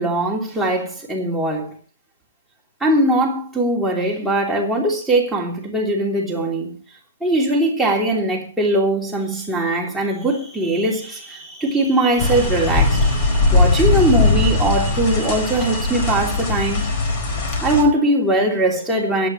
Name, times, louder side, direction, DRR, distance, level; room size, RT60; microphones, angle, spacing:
voice 1, 0.0-1.7 2.8-6.7 7.2-16.9 17.6-19.3, right 1 dB, ahead, 3.2 m, -20 dB
sound 1, 12.2-17.8, left 3 dB, 25° left, 4.4 m, -19 dB
23.5 x 9.4 x 3.1 m
hypercardioid pair, 165°, 0 cm